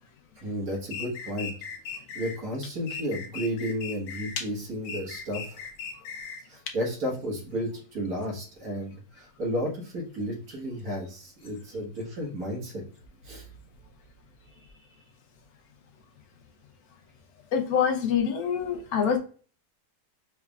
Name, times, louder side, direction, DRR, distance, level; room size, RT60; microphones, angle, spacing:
voice 1, 0.4-1.5 2.1-5.6 6.5-12.8 13.2-13.5, equal, 60° right, -2 dB, 1.9 m, -32 dB
sound 1, 0.9-2.4 2.9-4.4 4.8-6.5, left 6 dB, 90° left, 1.3 m, -38 dB
voice 2, 17.5-19.2, left 7 dB, 70° left, 5 dB, 1.2 m, -25 dB
4.6 x 3.4 x 2.3 m, 0.40 s
omnidirectional pair, 1.8 m